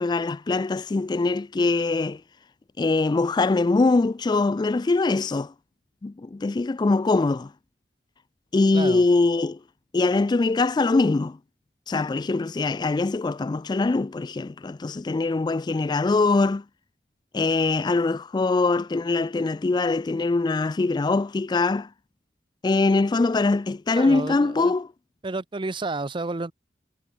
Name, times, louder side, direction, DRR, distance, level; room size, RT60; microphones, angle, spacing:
voice 1, 0.0-2.2 2.8-5.5 6.0-7.5 8.5-9.6 9.9-11.4 11.9-16.6 17.3-21.9 22.6-24.9, left 3 dB, 25° left, 0.3 m, -23 dB
voice 2, 23.9-24.7 25.2-26.5, right 3 dB, 30° right, 0.6 m, -31 dB
head